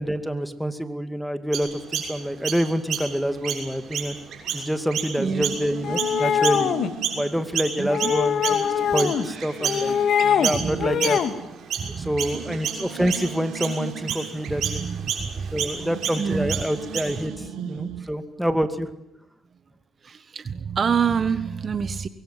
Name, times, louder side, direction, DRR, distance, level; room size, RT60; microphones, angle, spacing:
voice 1, 0.0-4.2 4.5-6.7 7.1-10.0 10.2-11.2 11.9-14.8 15.5-17.3 17.6-18.9, equal, ahead, 9 dB, 2.4 m, -27 dB
Chirp tweet, 1.5-7.3 7.5-17.3, right 7 dB, 65° right, 6.9 m, -31 dB
sound 1, 4.5-8.2 8.7-18.1, right 8 dB, 85° right, 2.1 m, -39 dB
voice 2, 5.2-5.6 7.8-8.1 9.3-9.4 10.5-10.9 11.8-12.2 14.6-15.7 16.2-16.5 17.9-18.1 20.0-22.1, right 6 dB, 45° right, 12 dB, 1.5 m, -27 dB
sound 2, 5.8-6.9 7.9-9.3 9.6-10.5 10.8-11.3, left 8 dB, 65° left, 2.2 m, -22 dB
24.0 x 23.0 x 9.5 m, 0.85 s
cardioid pair, 90°, 0 cm